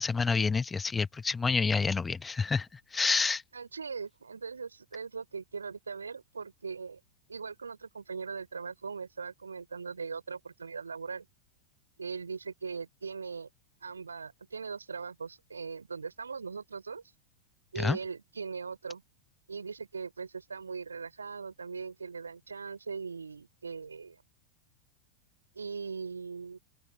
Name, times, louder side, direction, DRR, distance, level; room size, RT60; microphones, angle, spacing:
voice 1, 0.0-3.4 17.8-18.0, left 4 dB, 15° left, 1.1 m, -28 dB
voice 2, 3.5-7.0 7.3-11.3 12.0-13.5 13.8-17.0 17.7-19.0 19.5-24.2 25.5-26.6, right 5 dB, 75° right, 3.6 m, -40 dB
open air
figure-of-eight pair, 90°, 0 cm